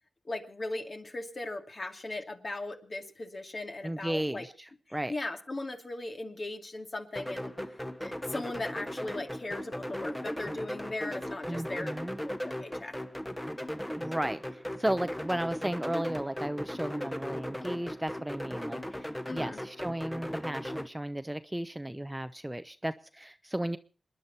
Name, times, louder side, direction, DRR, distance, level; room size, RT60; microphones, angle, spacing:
voice 1, 0.2-4.4 5.1-7.5 8.0-11.9 12.2-12.9 19.3-19.6, left 2 dB, 50° left, 4 dB, 2.4 m, -38 dB
voice 2, 3.8-5.1 11.4-12.2 14.0-23.8, right 1 dB, 10° right, 11 dB, 0.8 m, -34 dB
sound 1, 7.2-20.9, equal, 10° left, 1.2 m, -37 dB
27.5 x 10.5 x 4.3 m, 0.36 s
cardioid pair, 50°, 0 cm